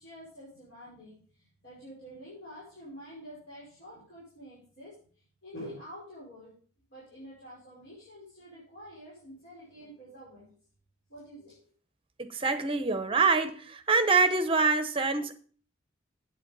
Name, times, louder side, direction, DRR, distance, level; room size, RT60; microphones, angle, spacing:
voice 1, 0.0-4.9 5.4-6.5 6.9-10.5 11.1-11.6, equal, 55° left, -8 dB, 5.5 m, -47 dB
voice 2, 12.2-15.4, right 4 dB, 25° right, 10 dB, 0.9 m, -25 dB
9.2 x 8.7 x 5.4 m, 0.43 s
head